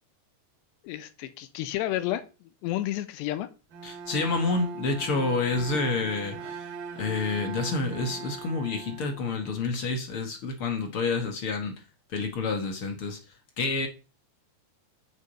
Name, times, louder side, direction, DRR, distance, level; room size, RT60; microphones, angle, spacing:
voice 1, 0.8-2.2 2.6-3.5, left 14 dB, 90° left, 3.1 m, -30 dB
Bowed string instrument, 3.7-9.7, right 6 dB, 60° right, 3.7 m, -40 dB
voice 2, 3.8-6.6 7.0-11.7 12.1-13.2 13.6-13.9, left 3 dB, 65° left, 1.3 m, -28 dB
7.4 x 6.8 x 8.0 m
omnidirectional pair, 4.9 m